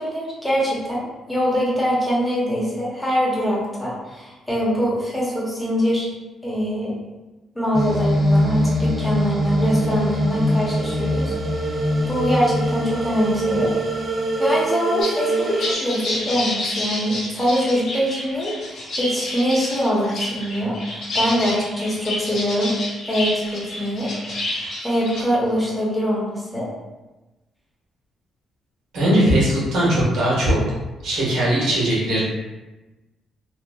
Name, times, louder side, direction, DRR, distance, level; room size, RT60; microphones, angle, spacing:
voice 1, 0.0-6.1 6.4-6.9 7.5-11.3 12.1-13.7 14.4-22.7 23.1-24.1 24.4-26.7, equal, 10° left, -6 dB, 0.9 m, -23 dB
sound 1, 7.7-15.7, equal, 40° right, 0.5 m, -22 dB
sound 2, 15.0-25.2, left 1 dB, 65° left, 1.0 m, -29 dB
voice 2, 28.9-30.6 31.0-32.2, right 1 dB, 80° right, -7 dB, 1.2 m, -19 dB
2.9 x 2.4 x 2.2 m, 1.1 s
cardioid pair, 90°, 0 cm